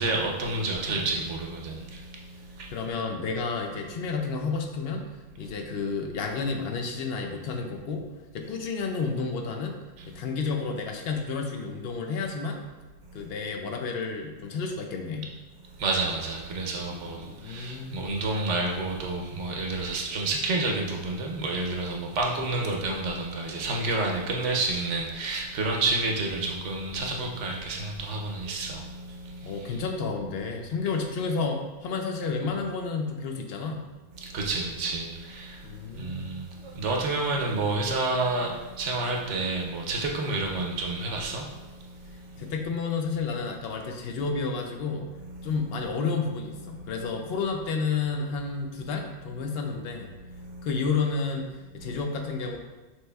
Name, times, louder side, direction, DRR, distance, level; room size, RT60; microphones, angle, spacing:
voice 1, 0.0-2.0 2.6-2.7 10.0-10.1 15.8-29.8 34.2-35.6 36.0-41.5 45.3-45.9 46.6-47.0 50.4-50.8, right 2 dB, 85° right, 0 dB, 1.0 m, -30 dB
voice 2, 2.7-5.0 5.4-8.1 8.3-9.8 10.1-12.6 13.1-15.3 17.0-18.1 29.4-33.8 35.6-36.3 42.4-45.1 45.4-50.1 50.6-51.5 51.7-52.6, left 4 dB, 65° left, 3 dB, 0.8 m, -31 dB
6.0 x 2.9 x 2.3 m, 1.2 s
omnidirectional pair, 1.2 m